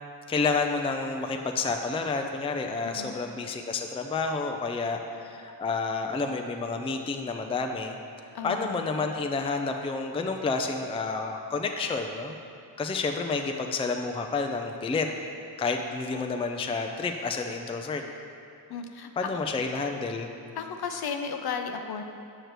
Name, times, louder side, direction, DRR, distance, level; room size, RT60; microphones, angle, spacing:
voice 1, 0.3-7.9 8.4-12.4 12.8-15.1 15.6-18.0 19.2-20.3, left 4 dB, 15° left, 4 dB, 0.4 m, -30 dB
voice 2, 2.8-3.1 8.3-8.9 18.7-19.1 20.6-22.0, left 6 dB, 55° left, 5 dB, 0.6 m, -34 dB
6.5 x 6.4 x 3.1 m, 2.5 s
supercardioid pair, 55°, 45 cm